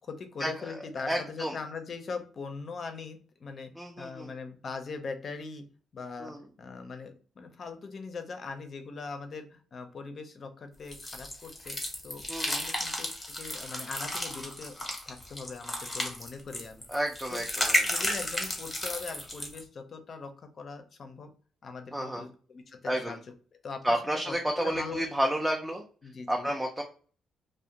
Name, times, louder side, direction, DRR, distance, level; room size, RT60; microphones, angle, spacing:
voice 1, 0.1-5.7 5.9-11.8 12.0-16.8 17.3-17.4 17.9-21.3 21.6-23.2 23.6-24.0 24.2-25.1 26.0-26.5, left 4 dB, 45° left, 7 dB, 0.5 m, -41 dB
voice 2, 1.0-1.5 3.8-4.3 6.2-6.4 12.3-12.7 16.9-17.8 21.9-22.2 22.8-23.2 23.8-25.8 26.3-26.8, right 1 dB, 5° right, 1 dB, 0.4 m, -31 dB
sound 1, 10.9-19.6, left 1 dB, 20° left, 0.8 m, -33 dB
2.4 x 2.0 x 2.8 m, 0.40 s
cardioid pair, 90°, 0 cm